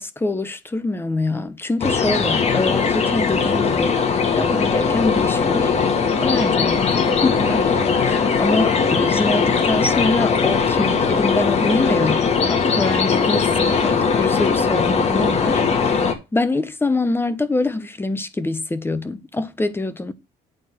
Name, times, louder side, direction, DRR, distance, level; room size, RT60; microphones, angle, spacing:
voice 1, 0.0-5.8 6.2-20.1, left 2 dB, 15° left, 1.1 m, -25 dB
sound 1, 1.8-16.1, left 5 dB, 40° left, 2.0 m, -19 dB
9.0 x 3.9 x 6.3 m
cardioid pair, 110°, 17 cm